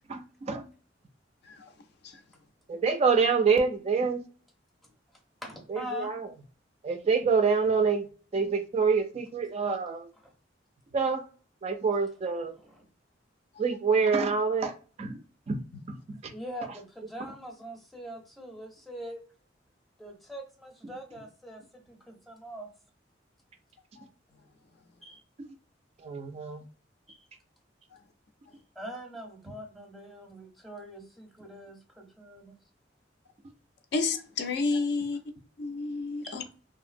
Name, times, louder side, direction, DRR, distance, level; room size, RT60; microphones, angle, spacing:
voice 1, 0.1-0.7 2.7-4.2 5.7-6.3 6.8-8.1 8.3-10.1 10.9-11.3 11.6-12.6 13.6-15.2 15.5-15.6 15.9-16.3 26.0-26.6, right 5 dB, 35° right, 0.3 m, -26 dB
voice 2, 5.4-6.1 10.2-10.3 12.6-12.8 16.3-19.2 20.0-22.7 25.0-25.2 27.1-27.3 28.8-32.5 36.2-36.4, equal, ahead, 0.6 m, -43 dB
voice 3, 33.9-35.2 35.6-36.4, left 4 dB, 65° left, 0.4 m, -30 dB
2.8 x 2.6 x 2.5 m
head